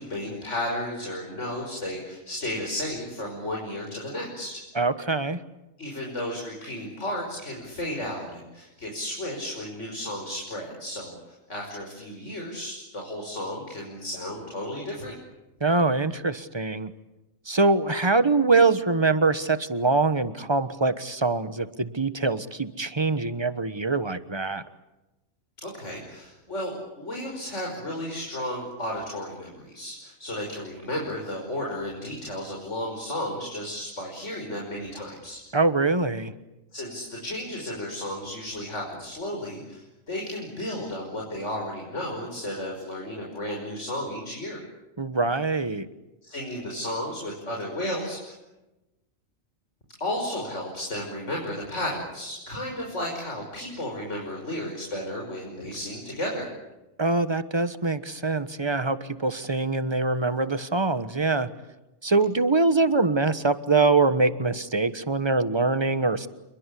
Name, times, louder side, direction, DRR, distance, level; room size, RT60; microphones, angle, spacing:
voice 1, 0.0-4.6 5.8-15.2 25.6-35.4 36.7-44.6 46.2-48.3 50.0-56.5, left 1 dB, 60° left, -1 dB, 6.1 m, -33 dB
voice 2, 4.7-5.4 15.6-16.9 17.5-24.6 35.5-36.3 45.0-45.9 57.0-61.5 62.0-66.3, right 3 dB, 20° right, 13 dB, 1.2 m, -24 dB
29.0 x 22.5 x 8.5 m, 1.0 s
omnidirectional pair, 1.4 m